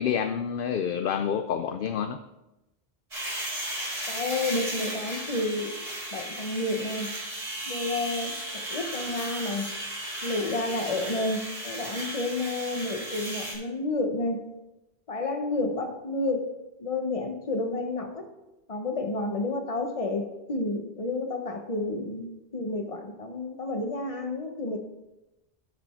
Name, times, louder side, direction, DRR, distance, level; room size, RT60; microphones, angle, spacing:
voice 1, 0.0-2.2, left 8 dB, 60° left, 8 dB, 0.7 m, -28 dB
sound 1, 3.1-13.6, right 1 dB, 90° right, 4.4 m, -35 dB
voice 2, 4.1-5.8 6.1-7.1 7.7-9.7 10.2-14.4 15.1-16.5 16.8-18.3 18.7-24.8, left 2 dB, 35° left, 5 dB, 1.0 m, -30 dB
13.0 x 5.1 x 4.4 m, 0.98 s
omnidirectional pair, 1.1 m